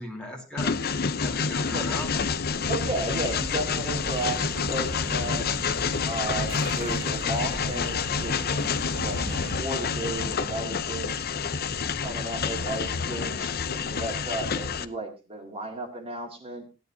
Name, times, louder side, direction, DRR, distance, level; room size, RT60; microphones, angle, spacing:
voice 1, 0.0-2.2, left 1 dB, 5° left, 1 dB, 2.2 m, -38 dB
Train, 0.6-14.9, left 5 dB, 45° left, 0.6 m, -28 dB
voice 2, 2.7-5.6 6.0-9.2 9.5-11.3 12.0-16.7, right 2 dB, 25° right, 2 dB, 2.1 m, -34 dB
sound 1, 2.9-9.6, right 2 dB, 55° right, 0.9 m, -39 dB
sound 2, 6.5-9.5, right 4 dB, 80° right, 3.3 m, -46 dB
16.0 x 10.5 x 2.8 m, 0.30 s
head